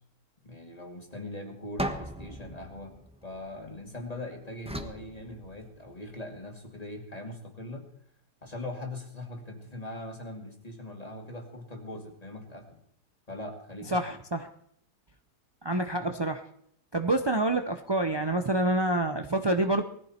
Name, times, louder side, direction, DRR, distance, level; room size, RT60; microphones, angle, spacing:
voice 1, 0.4-2.9 3.2-7.9 8.4-12.8 13.3-14.0, left 1 dB, 25° left, 2 dB, 2.6 m, -41 dB
sound 1, 1.8-4.0 4.7-6.0, right 1 dB, 5° right, 1.0 m, -38 dB
voice 2, 13.9-14.5 15.6-16.4 16.9-19.8, right 1 dB, 40° right, 6 dB, 0.3 m, -27 dB
20.0 x 14.5 x 4.3 m, 0.68 s
omnidirectional pair, 1.7 m